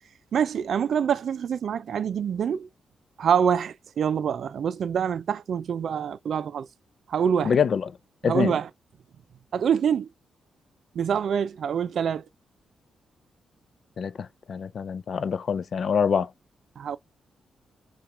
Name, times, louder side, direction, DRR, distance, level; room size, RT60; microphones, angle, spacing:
voice 1, 0.3-2.7 3.2-6.7 7.1-7.5 8.2-8.7 9.5-10.1 10.9-12.3 16.8-17.0, right 7 dB, 60° right, 0.4 m, -25 dB
voice 2, 7.4-7.9 8.2-8.5 14.0-16.3, left 7 dB, 50° left, 0.4 m, -25 dB
5.8 x 2.4 x 3.3 m
wide cardioid pair, 145°, 0 cm